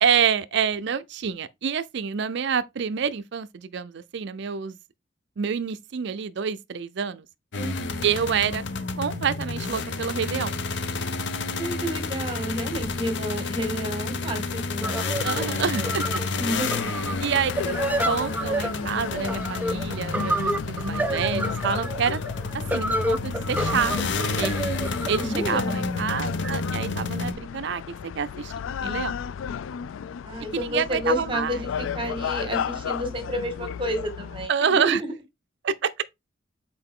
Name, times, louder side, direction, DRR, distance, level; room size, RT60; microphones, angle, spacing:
voice 1, 0.0-4.8 5.4-7.3 8.0-8.6 8.9-10.6 15.2-16.2 17.2-17.5 18.0-22.2 22.7-23.9 24.4-24.5 25.1-27.8 28.2-28.5 28.8-29.1 30.5-31.6 34.5-35.0 35.6-36.0, right 7 dB, 60° right, 0.4 m, -27 dB
sound 1, 7.5-27.3, left 3 dB, 65° left, 0.8 m, -30 dB
voice 2, 7.6-8.1 11.5-14.4 14.7-15.0 16.4-16.9 25.2-25.9 30.2-35.0, equal, 25° right, 1.9 m, -30 dB
sound 2, 14.8-26.4, right 1 dB, 10° right, 0.6 m, -30 dB
sound 3, 16.4-34.5, left 7 dB, 85° left, 0.3 m, -34 dB
6.8 x 4.4 x 3.6 m
head